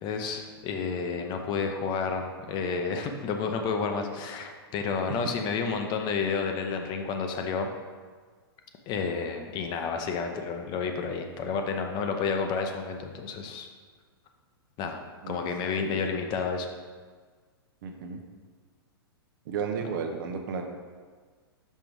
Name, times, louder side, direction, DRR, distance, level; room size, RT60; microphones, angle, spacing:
voice 1, 0.0-7.7 8.9-13.7 14.8-15.0 15.3-16.7, left 5 dB, 35° left, 4 dB, 0.8 m, -30 dB
voice 2, 17.8-18.2 19.5-20.6, right 6 dB, 55° right, 4 dB, 0.8 m, -33 dB
5.5 x 5.0 x 4.7 m, 1.5 s
hypercardioid pair, 120°, 13 cm